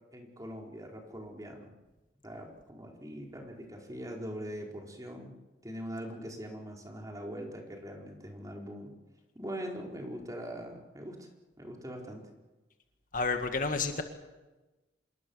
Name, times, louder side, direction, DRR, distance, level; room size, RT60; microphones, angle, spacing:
voice 1, 0.1-1.7 2.2-5.4 5.6-8.9 9.3-11.3 11.6-12.3, equal, 20° right, 1 dB, 4.3 m, -42 dB
voice 2, 13.1-14.0, left 4 dB, 50° left, 6 dB, 2.0 m, -30 dB
26.5 x 22.5 x 7.1 m, 1.1 s
head